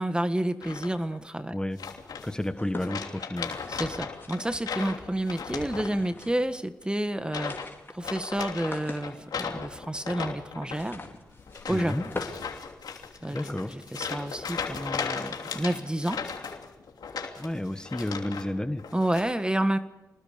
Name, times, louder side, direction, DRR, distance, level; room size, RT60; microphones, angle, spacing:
voice 1, 0.0-1.5 3.7-7.7 7.9-11.0 11.7-11.9 13.2-16.2 18.9-19.8, right 1 dB, 15° right, 10 dB, 1.6 m, -29 dB
sound 1, 0.6-1.2 1.8-2.5 2.8-6.3 6.5-6.8 7.2-7.7 8.0-18.5 18.8-19.2, left 6 dB, 90° left, 3.1 m, -37 dB
voice 2, 2.2-3.6 11.7-12.0 13.3-13.7 17.4-18.8, left 1 dB, 10° left, 9 dB, 1.4 m, -31 dB
sound 2, 2.5-5.0 5.6-6.5 6.8-6.9 7.2-13.3, left 3 dB, 35° left, 4.5 m, -43 dB
27.0 x 20.5 x 5.2 m, 1.0 s
cardioid pair, 60°, 7 cm